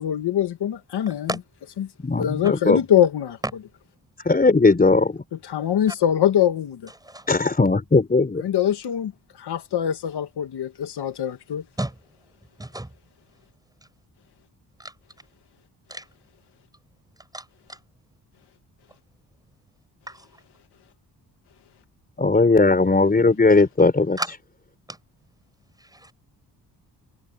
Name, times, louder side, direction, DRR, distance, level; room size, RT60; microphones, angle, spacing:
voice 1, 0.0-1.3 1.8-1.9 2.2-3.4 5.3-6.9 8.4-9.1 9.4-11.6, left 10 dB, 70° left, 1.7 m, -23 dB
voice 2, 1.1-1.4 7.0-7.5 11.8-11.9 12.6-12.9 14.8-14.9 15.9-16.0 17.3-17.4 17.7-17.8 20.1-20.3 24.2-24.3 24.9-25.0 25.9-26.1, right 1 dB, 10° right, 7.8 m, -32 dB
voice 3, 2.0-2.8 4.2-5.2 7.3-8.4 22.2-24.2, left 3 dB, 20° left, 4.6 m, -18 dB
wide cardioid pair, 145°, 41 cm